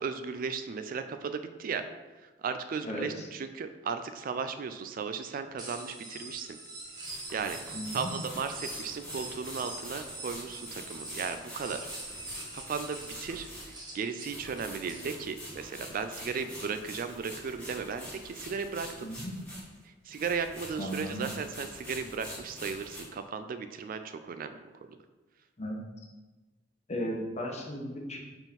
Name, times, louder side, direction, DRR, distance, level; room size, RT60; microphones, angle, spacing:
voice 1, 0.0-1.9 2.2-6.6 7.3-11.9 12.5-19.1 19.8-24.6, right 5 dB, 50° right, 9 dB, 0.3 m, -36 dB
voice 2, 2.8-3.3 7.7-8.1 19.0-19.3 20.8-21.3 25.6-25.8 26.9-28.2, equal, 40° left, 0 dB, 1.0 m, -36 dB
sound 1, 5.6-15.0, right 2 dB, 25° right, 1.2 m, -44 dB
sound 2, 6.9-19.8 20.1-23.0, equal, 5° left, 1.7 m, -45 dB
4.9 x 3.8 x 5.1 m, 1.2 s
head